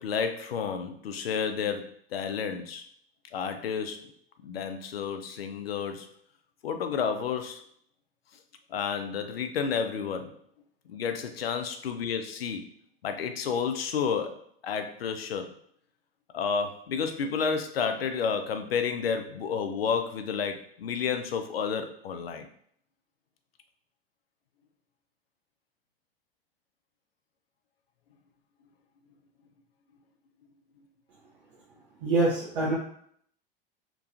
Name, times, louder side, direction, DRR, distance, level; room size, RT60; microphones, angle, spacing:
voice 1, 0.0-2.8 3.3-4.1 4.4-6.1 6.6-7.7 8.7-10.4 10.9-12.7 13.0-15.5 16.3-22.5, left 6 dB, 85° left, 7 dB, 0.4 m, -31 dB
voice 2, 32.0-32.8, right 2 dB, 55° right, -6 dB, 0.8 m, -25 dB
2.9 x 2.3 x 2.6 m, 0.63 s
hypercardioid pair, 85°, 29 cm